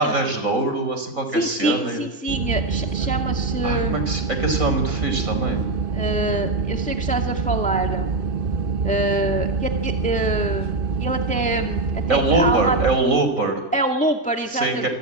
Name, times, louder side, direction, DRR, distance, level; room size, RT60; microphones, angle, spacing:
voice 1, 0.0-2.0 3.6-5.6 12.1-13.6 14.5-14.9, right 2 dB, 55° right, 8 dB, 5.5 m, -23 dB
voice 2, 1.3-4.0 5.9-8.1 8.8-12.8 13.7-14.9, right 1 dB, 5° left, 3 dB, 1.9 m, -25 dB
sound 1, 2.3-13.0, right 5 dB, 40° right, 1.1 m, -25 dB
27.5 x 23.0 x 8.9 m, 1.1 s
omnidirectional pair, 1.6 m